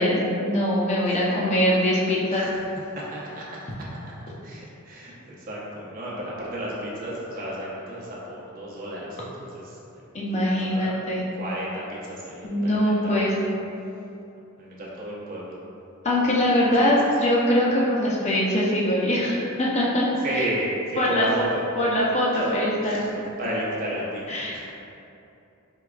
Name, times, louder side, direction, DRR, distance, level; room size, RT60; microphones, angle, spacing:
voice 1, 0.0-2.4 10.1-11.3 12.4-13.3 16.0-20.0 21.0-21.3 21.8-23.2 24.3-24.7, left 1 dB, 30° left, -4 dB, 0.6 m, -22 dB
voice 2, 2.9-3.4 4.4-10.0 10.3-10.9 11.3-13.2 14.6-15.5 16.6-16.7 20.2-21.6 22.3-22.5 22.8-24.7, right 1 dB, 40° right, -6 dB, 0.8 m, -33 dB
4.6 x 3.5 x 2.4 m, 2.7 s
head